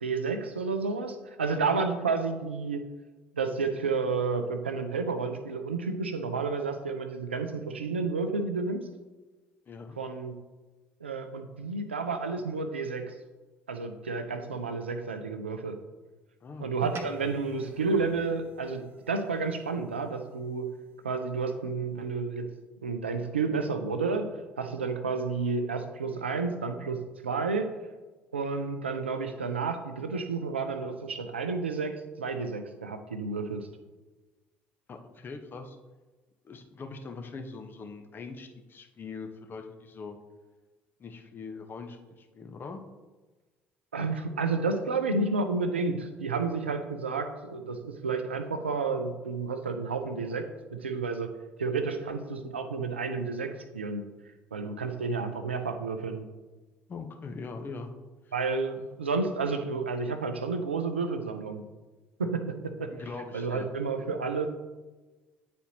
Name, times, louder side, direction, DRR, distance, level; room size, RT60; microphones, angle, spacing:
voice 1, 0.0-2.9 3.3-8.9 10.0-10.4 11.0-13.1 13.7-15.8 16.6-20.7 21.0-22.5 22.8-27.8 28.3-33.7 43.9-51.3 51.6-54.1 54.5-56.3 58.3-61.6 62.2-62.9 63.3-64.5, right 4 dB, 85° right, 7 dB, 0.5 m, -31 dB
voice 2, 9.7-10.0 16.4-16.9 34.9-35.8 36.4-40.2 41.0-42.8 56.9-57.9 58.2-58.3 58.8-58.9 62.9-63.7, left 4 dB, 35° left, 4 dB, 0.9 m, -42 dB
sound 1, 16.8-21.4, right 4 dB, 40° right, 0.9 m, -48 dB
9.3 x 4.1 x 2.8 m, 1.2 s
figure-of-eight pair, 55°, 6 cm